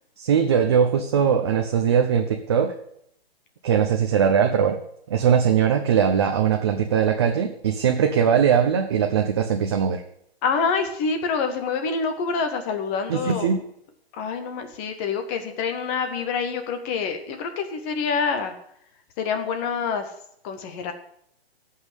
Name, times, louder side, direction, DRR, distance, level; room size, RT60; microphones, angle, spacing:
voice 1, 0.2-2.7 3.6-4.8 5.1-10.0 13.1-13.6, right 7 dB, 25° right, 4 dB, 0.7 m, -20 dB
voice 2, 10.4-13.5 14.2-18.6 19.2-20.1 20.4-20.9, left 5 dB, 15° left, 7 dB, 0.7 m, -26 dB
14.5 x 5.6 x 8.2 m, 0.71 s
hypercardioid pair, 165°, 31 cm